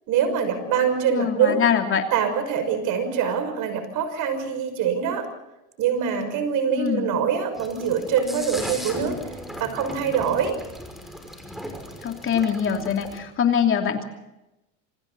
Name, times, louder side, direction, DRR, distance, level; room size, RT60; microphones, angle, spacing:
voice 1, 0.1-1.6 2.1-5.3 5.8-9.2 9.6-10.6, right 7 dB, 50° right, 9 dB, 6.1 m, -24 dB
Drum, 0.6-3.2, left 9 dB, 60° left, 5.4 m, -45 dB
voice 2, 1.1-2.1 6.7-7.2 12.0-14.0, left 8 dB, 30° left, 3 dB, 3.0 m, -23 dB
sound 1, 7.6-13.2, equal, ahead, 5.8 m, -37 dB
27.5 x 26.0 x 4.1 m, 0.94 s
supercardioid pair, 125°, 39 cm